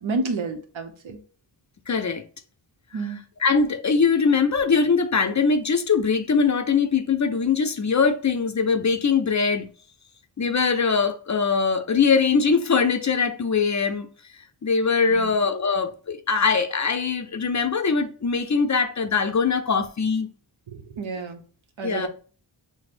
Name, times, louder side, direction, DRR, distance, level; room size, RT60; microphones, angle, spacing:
voice 1, 0.0-1.2 2.9-3.2 15.1-15.3 20.7-21.4 21.8-22.1, right 3 dB, 85° right, 0.8 m, -30 dB
voice 2, 1.9-2.2 3.4-9.7 10.4-14.1 14.6-20.3 21.8-22.1, left 5 dB, 40° left, 0.5 m, -22 dB
6.0 x 2.0 x 2.5 m
wide cardioid pair, 75°, 46 cm